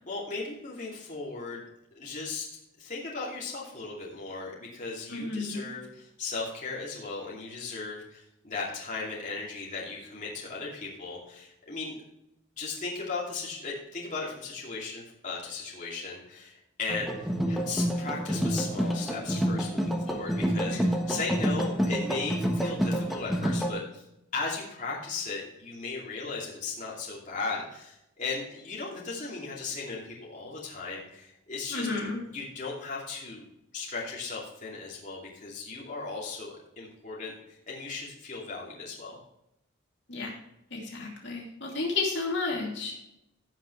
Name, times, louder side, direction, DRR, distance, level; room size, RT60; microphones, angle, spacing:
voice 1, 0.1-1.6 2.0-2.5 2.8-12.0 12.6-24.0 24.3-31.9 32.3-33.5 33.7-39.2, left 4 dB, 35° left, -5 dB, 2.6 m, -37 dB
voice 2, 5.1-5.7 20.7-20.9 31.7-32.2 40.1-40.3 40.7-42.9, left 3 dB, 55° left, -1 dB, 2.8 m, -32 dB
sound 1, 16.9-23.7, equal, ahead, 1.2 m, -28 dB
17.0 x 6.0 x 3.2 m, 0.82 s
head